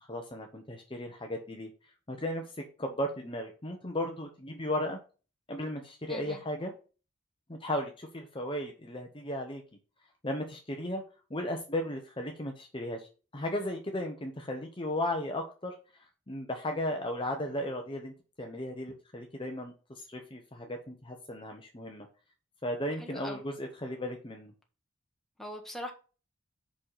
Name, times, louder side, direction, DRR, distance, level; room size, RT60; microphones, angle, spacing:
voice 1, 0.1-1.7 2.1-5.0 5.5-6.7 7.5-9.6 10.2-11.0 11.3-13.1 13.3-15.7 16.3-22.1 22.6-24.5, left 1 dB, 25° left, 1.0 m, -35 dB
voice 2, 6.1-6.4 23.0-23.4 25.4-25.9, equal, ahead, 1.5 m, -41 dB
5.8 x 5.3 x 6.6 m
head